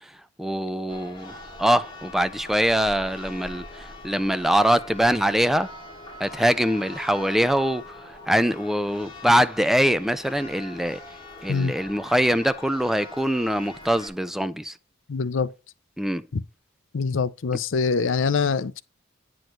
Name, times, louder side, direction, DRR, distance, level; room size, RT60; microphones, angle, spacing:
voice 1, 0.4-5.7 6.2-11.0 11.4-14.7 16.0-16.2, equal, ahead, 0.3 m, -23 dB
Church bell, 0.9-14.1, left 2 dB, 25° left, 3.6 m, -42 dB
voice 2, 15.1-15.5 16.3-16.4 16.9-18.8, left 5 dB, 70° left, 0.5 m, -24 dB
9.2 x 6.1 x 3.2 m
head